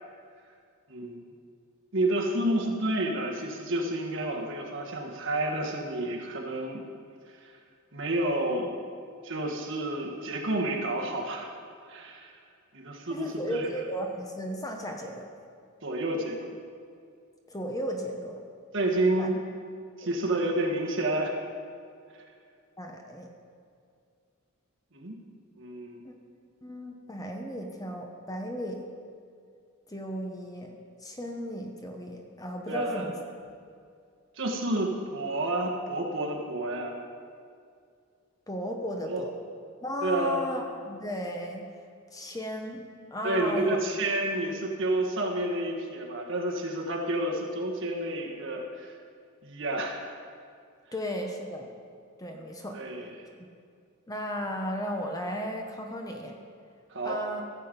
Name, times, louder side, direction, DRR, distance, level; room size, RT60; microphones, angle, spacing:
voice 1, 0.9-1.2 1.9-6.8 7.9-8.8 9.2-11.5 11.9-12.3 12.7-13.7 15.8-16.5 18.7-19.4 20.0-21.4 24.9-25.2 25.6-26.0 32.7-33.1 34.4-36.9 39.1-39.2 40.0-40.4 43.2-48.9 49.4-50.0 52.7-53.1 56.9-57.2, right 1 dB, 60° right, 0 dB, 1.4 m, -30 dB
voice 2, 13.1-15.3 17.5-18.4 19.2-19.3 20.0-20.2 22.8-23.3 26.0-26.1 26.6-28.8 29.9-30.7 31.0-33.5 38.5-39.3 39.8-41.7 42.1-43.8 50.9-51.7 52.2-52.8 54.1-56.4 57.0-57.4, equal, 15° left, 2 dB, 0.9 m, -35 dB
14.5 x 7.6 x 5.2 m, 2.3 s
head